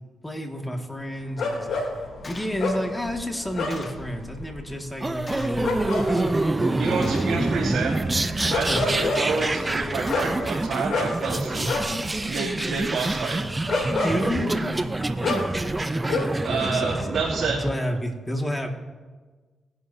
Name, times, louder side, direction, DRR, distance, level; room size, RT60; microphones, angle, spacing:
voice 1, 0.2-1.9 2.2-6.2 6.7-6.8 8.7-8.9 11.6-11.7 12.6-12.7 14.0-14.9 16.2-16.3 16.6-18.7, equal, 10° left, 2 dB, 2.1 m, -31 dB
sound 1, 1.4-16.6 16.8-17.6, left 3 dB, 75° left, 3.2 m, -30 dB
Gunshot gunfire, 2.2-2.6 3.7-4.1 5.3-5.7 7.0-7.4 8.4-8.9 10.1-10.5, left 3 dB, 40° left, 1.5 m, -41 dB
sound 2, 5.0-17.7, right 2 dB, 25° right, 0.7 m, -27 dB
voice 2, 6.8-8.0 8.5-11.6 12.2-13.4 16.4-17.6, right 4 dB, 75° right, -9 dB, 2.8 m, -28 dB
21.0 x 11.0 x 2.8 m, 1.4 s
cardioid pair, 60°, 0 cm